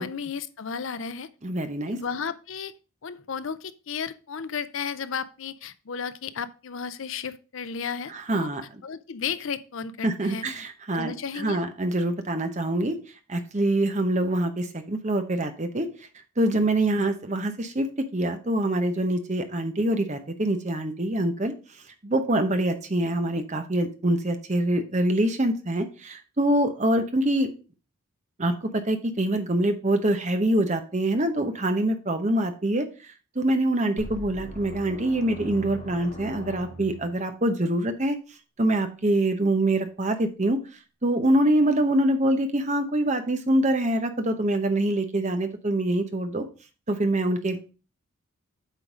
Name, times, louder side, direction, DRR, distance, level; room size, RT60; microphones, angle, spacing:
voice 1, 0.0-1.3 1.9-2.7 3.0-8.5 8.8-10.4 10.9-11.6, left 6 dB, 60° left, 13 dB, 0.5 m, -33 dB
voice 2, 1.4-2.0 8.1-8.8 10.0-13.0 13.3-15.9 16.4-17.9 18.1-21.5 22.0-27.5 28.4-32.9 33.3-38.2 38.6-40.6 41.0-46.4 46.9-47.6, right 1 dB, 30° right, 7 dB, 0.9 m, -25 dB
sound 1, 34.0-37.2, right 1 dB, 35° left, 2.3 m, -40 dB
8.2 x 3.9 x 5.0 m, 0.34 s
head